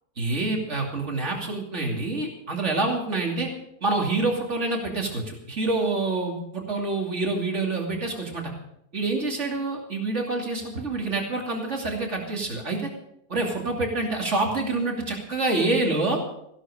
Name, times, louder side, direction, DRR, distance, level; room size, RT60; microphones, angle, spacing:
voice 1, 0.2-3.5 3.8-8.5 8.9-12.9 13.3-16.2, right 2 dB, 45° right, 1 dB, 3.0 m, -27 dB
15.5 x 12.5 x 5.0 m, 0.77 s
omnidirectional pair, 1.7 m